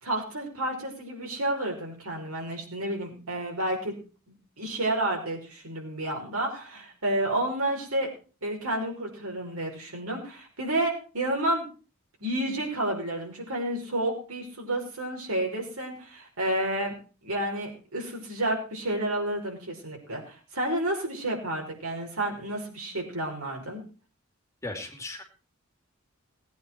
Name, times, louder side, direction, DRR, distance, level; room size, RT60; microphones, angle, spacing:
voice 1, 0.0-4.0 4.3-8.1 8.4-11.7 12.2-16.9 17.2-23.8, right 1 dB, 80° right, 1 dB, 5.5 m, -30 dB
voice 2, 24.6-25.2, left 2 dB, 15° left, 3 dB, 2.9 m, -36 dB
19.5 x 9.4 x 4.6 m, 0.35 s
head